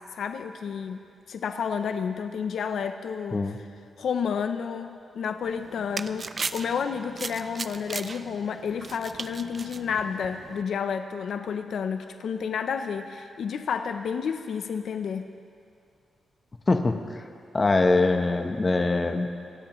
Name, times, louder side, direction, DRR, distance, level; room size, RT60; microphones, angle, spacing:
voice 1, 0.1-1.0 1.3-3.4 4.0-15.3, left 6 dB, 75° left, 8 dB, 0.6 m, -30 dB
sound 1, 5.4-10.6, right 4 dB, 35° right, 0.4 m, -38 dB
voice 2, 16.7-17.2 17.5-19.3, left 3 dB, 25° left, 5 dB, 0.9 m, -23 dB
27.0 x 16.5 x 3.1 m, 2.4 s
wide cardioid pair, 130°, 0 cm